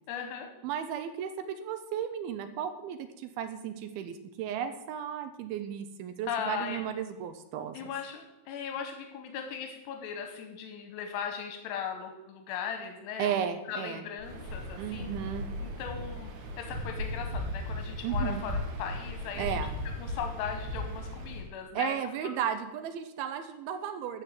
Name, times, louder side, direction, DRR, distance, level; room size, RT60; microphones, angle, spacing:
voice 1, 0.1-0.5 6.3-6.8 7.7-15.1 15.6-16.3 16.6-19.6 20.0-22.0, left 7 dB, 85° left, 4 dB, 3.1 m, -38 dB
voice 2, 0.6-7.9 13.2-14.0 14.8-15.5 18.0-18.4 19.4-19.7 21.7-24.2, right 9 dB, 80° right, 9 dB, 2.4 m, -34 dB
Waves surf, 14.2-21.5, left 1 dB, 65° right, 2.0 m, -36 dB
13.0 x 5.2 x 7.6 m, 0.98 s
omnidirectional pair, 4.7 m